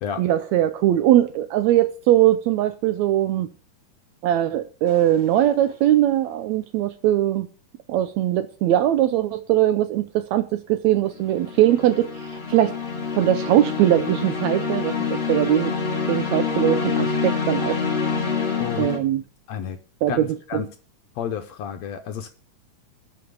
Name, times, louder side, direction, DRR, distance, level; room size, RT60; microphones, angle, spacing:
voice 1, 0.2-3.5 4.2-7.5 7.9-12.7 13.1-15.7 16.1-17.8 18.8-19.2 20.0-20.7, right 12 dB, 80° right, 1.7 m, -21 dB
sound 1, 4.9-5.2 11.1-19.0, left 5 dB, 20° left, 1.9 m, -26 dB
voice 2, 20.1-20.7 21.2-22.3, left 8 dB, 75° left, 1.7 m, -30 dB
12.0 x 5.3 x 6.6 m
omnidirectional pair, 3.6 m